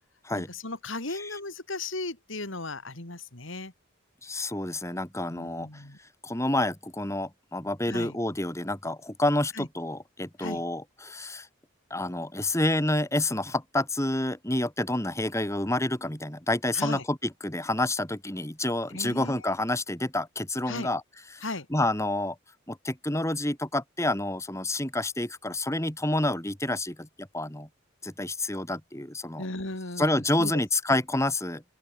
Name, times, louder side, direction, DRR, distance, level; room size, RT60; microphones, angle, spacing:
voice 1, 0.3-3.7 5.3-6.0 7.8-8.2 9.5-9.7 10.4-10.6 16.7-17.0 18.9-19.4 20.7-20.9 21.4-21.7 29.4-30.6, left 2 dB, 60° left, 3.1 m, -36 dB
voice 2, 4.2-5.8 6.2-11.5 11.9-21.0 21.3-21.4 21.7-22.4 22.7-27.7 28.0-29.4 30.0-31.6, left 1 dB, 15° left, 2.7 m, -28 dB
open air
head